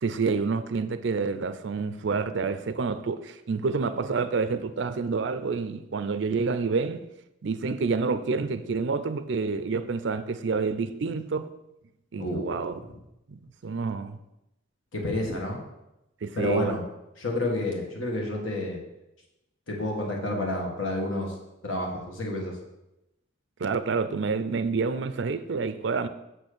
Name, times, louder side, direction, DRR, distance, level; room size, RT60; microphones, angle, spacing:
voice 1, 0.0-7.1 7.4-11.5 12.1-12.8 13.3-14.2 16.2-16.7 23.6-26.1, right 4 dB, 60° right, 0.4 m, -28 dB
voice 2, 12.2-12.5 14.9-15.6 16.3-16.8 17.2-18.8 19.7-21.3 21.6-22.6, left 1 dB, 75° left, 1.6 m, -29 dB
6.4 x 4.3 x 6.6 m
head